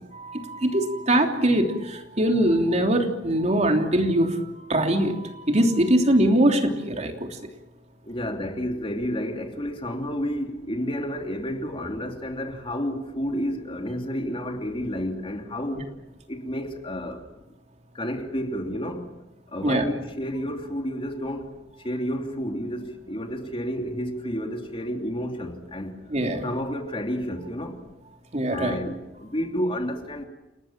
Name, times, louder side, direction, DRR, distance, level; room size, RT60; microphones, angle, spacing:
voice 1, 0.1-7.3 19.6-19.9 26.1-26.4 28.3-28.8, right 1 dB, 40° right, 3.2 m, -22 dB
voice 2, 8.0-15.9 16.3-17.2 17.9-19.1 19.5-21.5 21.8-25.9 26.4-27.8 28.5-30.3, equal, 30° left, 2.9 m, -30 dB
29.5 x 19.5 x 7.5 m
head